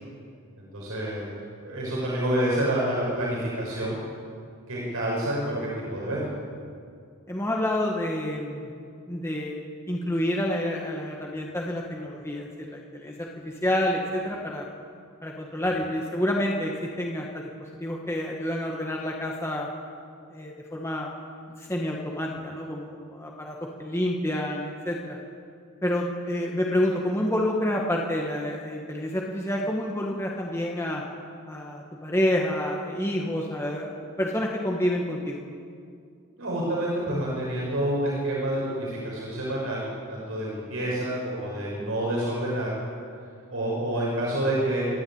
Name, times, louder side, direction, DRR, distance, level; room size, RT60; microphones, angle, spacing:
voice 1, 0.6-1.2 1.6-4.0 4.7-6.2 36.4-42.7 43.5-44.8, right 1 dB, 75° right, -5 dB, 6.2 m, -28 dB
voice 2, 7.3-8.7 9.1-9.5 9.9-14.7 15.2-17.5 17.8-19.7 20.3-21.1 21.6-25.2 25.8-31.0 31.5-35.4, left 1 dB, 10° left, -1 dB, 1.7 m, -28 dB
26.5 x 12.0 x 8.9 m, 2.3 s
head